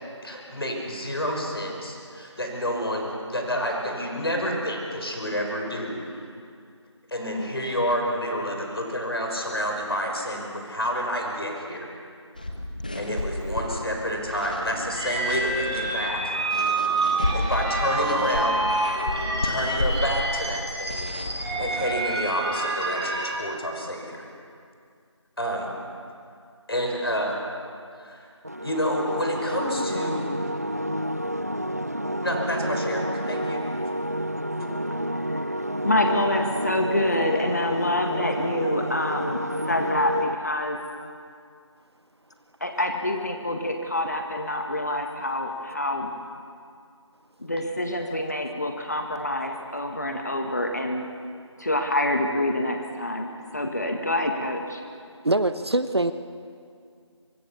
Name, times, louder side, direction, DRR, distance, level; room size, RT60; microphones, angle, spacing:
voice 1, 0.2-6.3 7.1-11.9 12.9-16.4 17.3-18.7 19.4-21.1 21.4-24.3 25.4-25.7 26.7-27.5 28.0-28.3 28.6-30.5 32.2-33.7 34.6-34.7, equal, 50° left, 2 dB, 5.5 m, -29 dB
sound 1, 12.4-22.2, left 1 dB, 15° left, 1.2 m, -32 dB
sound 2, 14.9-23.2, right 2 dB, ahead, 1.8 m, -28 dB
sound 3, 28.4-40.3, equal, 30° right, 0.6 m, -29 dB
voice 2, 35.8-39.4 39.7-40.8 42.6-46.1 47.4-51.0 51.6-54.8, left 1 dB, 35° left, 3 dB, 1.7 m, -26 dB
voice 3, 55.2-56.1, right 2 dB, 55° right, 11 dB, 1.0 m, -23 dB
26.0 x 24.5 x 7.1 m, 2.3 s
figure-of-eight pair, 175°, 16 cm